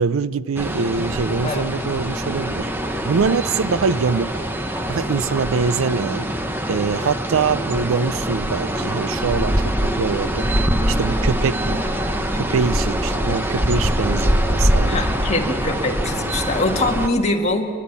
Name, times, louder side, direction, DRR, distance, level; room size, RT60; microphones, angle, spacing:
voice 1, 0.0-2.7 3.0-4.5 4.9-6.3 6.7-10.5 10.9-11.8 12.3-15.0, right 5 dB, 70° right, 16 dB, 0.5 m, -23 dB
sound 1, 0.6-17.1, equal, 10° right, 0.9 m, -23 dB
voice 2, 14.8-17.7, left 2 dB, 30° left, 1 dB, 1.8 m, -23 dB
28.0 x 12.0 x 8.2 m, 2.2 s
head